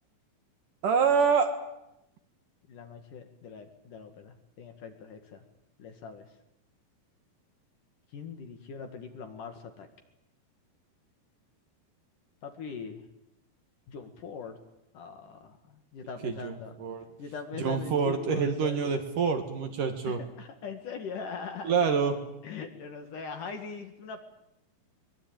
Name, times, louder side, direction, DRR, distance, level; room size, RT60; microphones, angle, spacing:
voice 1, 0.8-1.5 16.2-16.5 16.8-17.0 17.6-20.2 21.6-22.2, right 6 dB, 60° right, 7 dB, 2.9 m, -26 dB
voice 2, 2.7-5.4 5.8-6.3 8.1-9.9 12.4-13.0 13.9-14.6 14.9-16.8 17.2-18.8 20.0-22.0 22.4-24.2, left 5 dB, 55° left, 7 dB, 3.1 m, -41 dB
23.5 x 22.5 x 9.0 m, 0.86 s
omnidirectional pair, 5.0 m